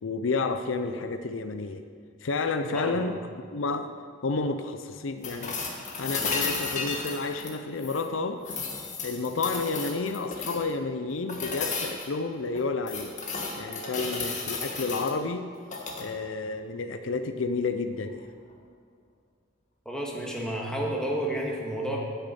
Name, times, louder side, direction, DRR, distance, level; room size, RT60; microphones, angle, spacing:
voice 1, 0.0-1.8 2.2-3.2 3.5-3.9 4.2-5.6 6.0-8.4 9.0-13.1 13.6-15.5 16.0-18.3, left 3 dB, 70° left, 9 dB, 0.6 m, -30 dB
voice 2, 2.7-3.0 19.8-22.0, right 1 dB, 5° left, -2 dB, 1.8 m, -31 dB
sound 1, 5.2-8.1 8.4-10.7 11.3-12.1 12.5-15.1 15.6-16.1 18.1-18.2, left 4 dB, 40° left, 1.5 m, -33 dB
10.0 x 6.6 x 8.4 m, 2.1 s
head